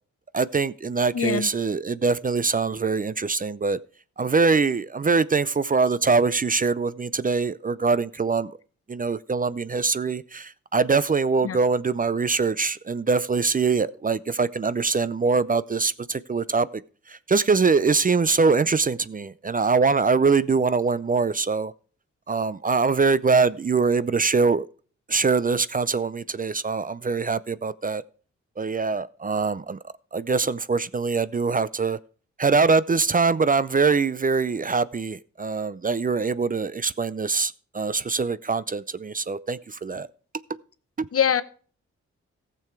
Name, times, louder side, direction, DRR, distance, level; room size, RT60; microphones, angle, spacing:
voice 1, 0.3-3.8 4.2-8.6 8.9-16.8 17.1-21.7 22.3-24.7 25.1-28.0 28.6-29.8 30.1-32.0 32.4-40.1 41.0-41.1, right 4 dB, 30° right, 0.5 m, -23 dB
voice 2, 1.1-1.5 11.4-11.6 41.1-41.4, left 8 dB, 50° left, 0.8 m, -23 dB
15.0 x 6.9 x 4.6 m
cardioid pair, 55°, 29 cm